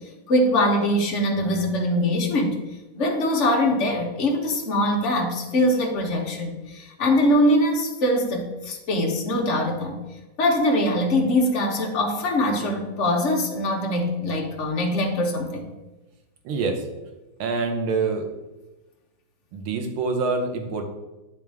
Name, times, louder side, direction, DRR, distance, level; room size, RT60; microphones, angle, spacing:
voice 1, 0.3-2.6 3.0-10.0 10.4-15.7, left 1 dB, 45° left, 0 dB, 1.1 m, -22 dB
voice 2, 16.4-16.8 17.4-18.2 19.5-20.8, right 4 dB, 85° right, 3 dB, 1.8 m, -25 dB
10.5 x 3.7 x 3.5 m, 1.1 s
omnidirectional pair, 2.2 m